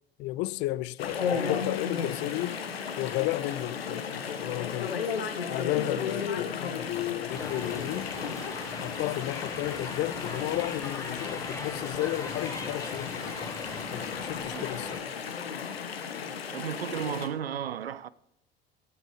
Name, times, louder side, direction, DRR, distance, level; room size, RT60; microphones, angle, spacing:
voice 1, 0.2-2.6 3.0-5.0 5.5-8.2 8.8-13.1 13.9-15.0, left 17 dB, 40° left, 0.4 m, -33 dB
Chatter / Stream, 1.0-17.3, left 6 dB, 75° left, 1.0 m, -34 dB
sound 1, 7.3-15.0, left 2 dB, 10° left, 1.9 m, -40 dB
voice 2, 16.5-18.1, right 8 dB, 80° right, 0.5 m, -34 dB
15.0 x 6.3 x 4.8 m
figure-of-eight pair, 65°, 30 cm